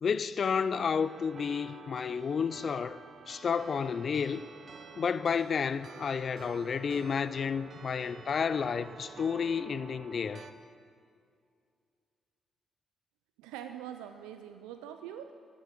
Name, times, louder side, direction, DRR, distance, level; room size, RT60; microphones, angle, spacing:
voice 1, 0.0-3.0 3.3-4.4 5.0-10.4, left 6 dB, 55° left, 0.4 m, -31 dB
sound 1, 1.0-10.5, right 5 dB, 55° right, 0.8 m, -49 dB
voice 2, 13.4-15.3, right 10 dB, 85° right, 0.4 m, -43 dB
9.6 x 7.7 x 7.5 m
hypercardioid pair, 45°, 0 cm